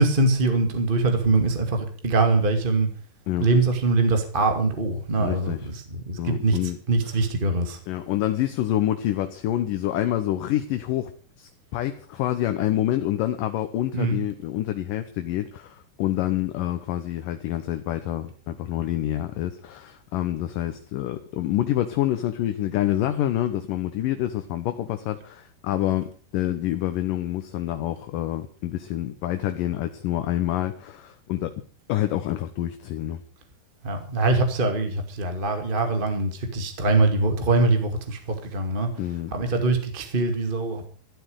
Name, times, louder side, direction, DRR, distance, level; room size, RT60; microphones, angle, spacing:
voice 1, 0.0-2.9 3.4-6.6 6.9-7.8 13.9-14.2 33.8-38.9 39.3-40.9, right 3 dB, 25° right, 5 dB, 1.1 m, -23 dB
voice 2, 5.2-5.7 6.2-6.8 7.1-7.2 7.9-11.1 11.4-31.5 31.9-33.2 39.0-39.3, left 13 dB, 70° left, 8 dB, 2.3 m, -27 dB
14.0 x 12.5 x 6.5 m, 0.41 s
omnidirectional pair, 4.7 m